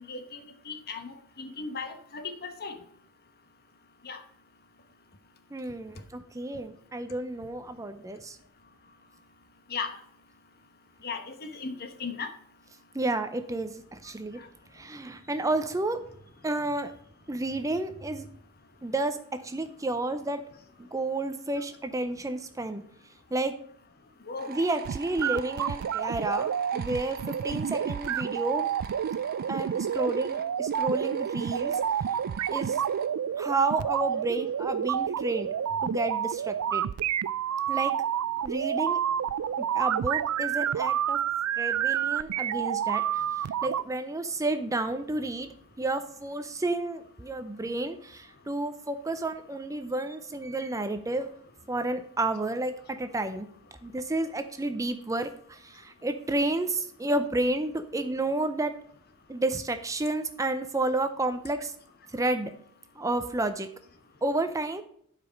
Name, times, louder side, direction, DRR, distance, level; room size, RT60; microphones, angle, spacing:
voice 1, 0.1-2.8 4.0-4.2 9.7-10.0 11.0-12.3 24.3-24.5, left 4 dB, 45° left, 7 dB, 1.2 m, -37 dB
voice 2, 5.5-8.4 12.9-14.4 14.7-16.0 16.4-16.9 17.3-18.3 18.8-20.5 20.8-22.8 23.3-23.6 24.5-28.7 29.5-31.8 32.5-32.8 33.4-35.5 35.8-36.8 37.7-38.0 38.4-39.0 39.6-41.2 41.6-45.5 45.8-51.3 51.7-53.5 53.8-58.7 59.3-61.7 62.1-62.5 63.0-63.7 64.2-64.8, right 2 dB, 15° right, 9 dB, 0.5 m, -31 dB
sound 1, 24.4-33.1, right 6 dB, 45° right, 0.8 m, -43 dB
sound 2, 24.8-43.8, right 9 dB, 70° right, 0.3 m, -29 dB
11.5 x 5.0 x 5.2 m, 0.64 s
head